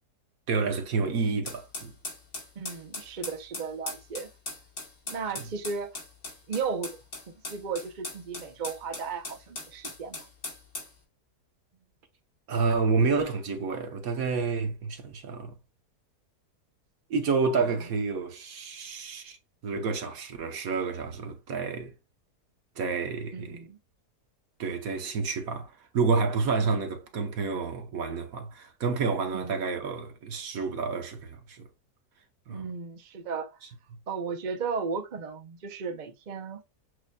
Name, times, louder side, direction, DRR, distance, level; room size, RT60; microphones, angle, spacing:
voice 1, 0.5-1.9 12.5-15.5 17.1-19.4 19.6-21.9 22.8-23.6 24.6-31.7 32.5-32.7, right 4 dB, 65° right, 1.3 m, -29 dB
sound 1, 1.5-10.9, left 2 dB, 50° left, 2.9 m, -40 dB
voice 2, 2.6-4.3 5.1-6.0 6.5-7.0 7.5-10.3 17.6-17.7 23.3-23.8 26.6-26.8 29.3-29.6 32.5-33.6 34.1-36.6, right 5 dB, 45° right, 0.6 m, -35 dB
7.8 x 2.9 x 2.2 m
omnidirectional pair, 1.7 m